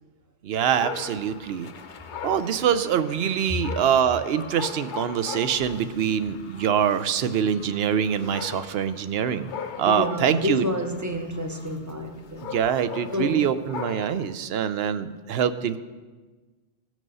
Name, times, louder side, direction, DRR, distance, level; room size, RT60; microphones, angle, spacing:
voice 1, 0.4-1.7 2.2-9.5 9.8-10.6 12.5-15.8, right 8 dB, 75° right, 0.8 m, -24 dB
Dog, 0.6-14.4, left 5 dB, 55° left, 0.8 m, -40 dB
voice 2, 9.9-12.5 13.1-13.5, left 1 dB, 20° right, 0.6 m, -29 dB
17.5 x 6.2 x 5.4 m
omnidirectional pair, 1.1 m